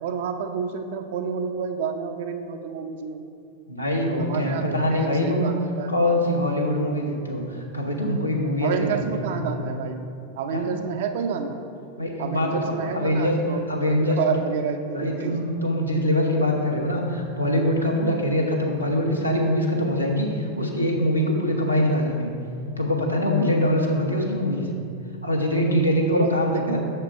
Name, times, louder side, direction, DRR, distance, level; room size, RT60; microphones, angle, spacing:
voice 1, 0.0-3.2 4.2-5.9 8.6-10.0 10.4-11.6 12.2-15.4 16.0-16.1 26.1-26.8, right 6 dB, 55° right, 6 dB, 0.6 m, -29 dB
voice 2, 3.7-5.5 5.9-9.5 10.5-10.7 12.0-13.4 13.7-14.2 14.9-22.3 22.8-24.7 25.2-26.8, left 1 dB, 90° left, -1 dB, 1.0 m, -23 dB
6.7 x 6.7 x 4.6 m, 2.5 s
figure-of-eight pair, 90°, 0 cm